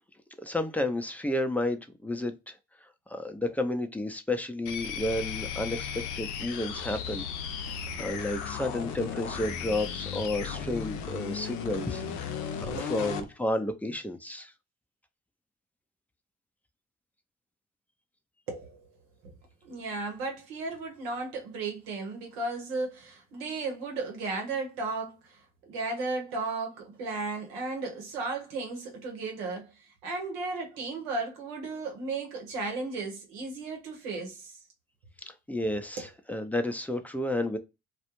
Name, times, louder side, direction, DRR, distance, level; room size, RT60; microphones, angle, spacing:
voice 1, 0.4-2.5 3.1-5.9 6.2-7.2 7.6-14.5 35.3-37.6, left 1 dB, 5° left, 0.5 m, -32 dB
sound 1, 4.7-13.3, left 7 dB, 75° left, 0.5 m, -35 dB
voice 2, 18.5-18.8 19.2-19.3 19.6-34.6 36.0-36.1, right 3 dB, 85° right, 0.9 m, -35 dB
2.4 x 2.2 x 3.0 m
hypercardioid pair, 45°, 31 cm